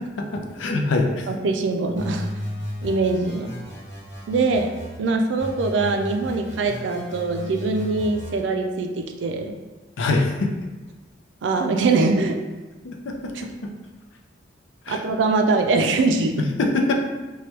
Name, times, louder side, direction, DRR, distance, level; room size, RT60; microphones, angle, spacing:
voice 1, 0.0-1.3 10.0-10.5 12.8-13.7 14.9-15.0 16.4-16.9, left 2 dB, 90° left, 2 dB, 0.4 m, -24 dB
voice 2, 1.3-2.3 2.8-3.5 4.3-4.7 5.0-9.5 11.4-12.4 14.9-16.4, right 3 dB, 75° right, 4 dB, 0.4 m, -22 dB
sound 1, 2.0-5.0 5.4-8.4, equal, 60° left, 1.1 m, -35 dB
3.1 x 2.2 x 2.9 m, 1.2 s
head